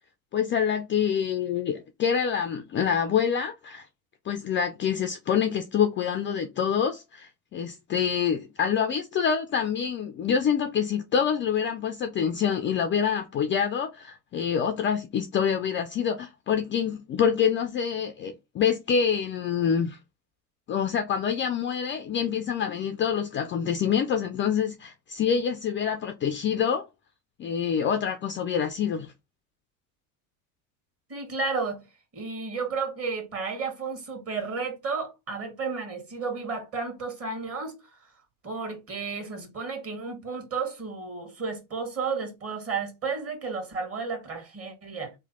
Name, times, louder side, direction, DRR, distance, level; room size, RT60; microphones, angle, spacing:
voice 1, 0.3-3.9 4.3-20.0 20.7-26.9 27.4-29.1, left 7 dB, 30° left, 0.4 m, -26 dB
voice 2, 31.1-31.8 32.1-37.8 38.4-45.1, right 4 dB, 30° right, 1.6 m, -32 dB
3.1 x 2.2 x 4.0 m
hypercardioid pair, 85°, 45 cm